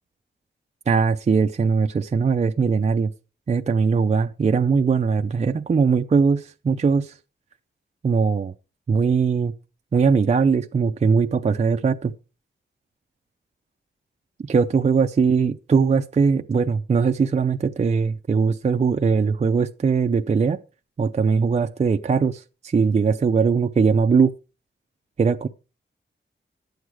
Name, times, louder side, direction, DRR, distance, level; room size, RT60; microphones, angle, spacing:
voice 1, 0.9-3.1 3.5-7.2 8.0-8.5 8.9-9.5 9.9-12.1 14.4-20.6 21.0-24.3 25.2-25.5, right 5 dB, 35° right, 0.5 m, -20 dB
11.0 x 8.0 x 4.8 m
wide cardioid pair, 150°, 20 cm